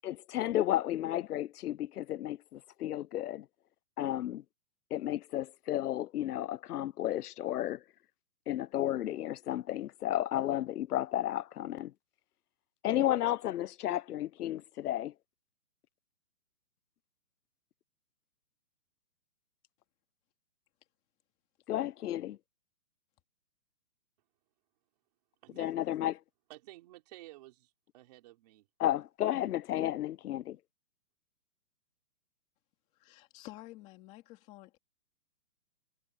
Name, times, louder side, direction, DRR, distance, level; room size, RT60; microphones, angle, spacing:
voice 1, 0.0-3.5 4.0-4.4 4.9-7.8 8.5-11.9 12.8-15.1 21.7-22.4 25.6-26.2 28.8-30.6, left 13 dB, 85° left, 0.6 m, -32 dB
voice 2, 25.4-25.9 26.5-28.7, right 17 dB, 25° right, 4.1 m, -53 dB
voice 3, 32.9-34.8, left 17 dB, 15° left, 2.2 m, -51 dB
hypercardioid pair, 175°, 44 cm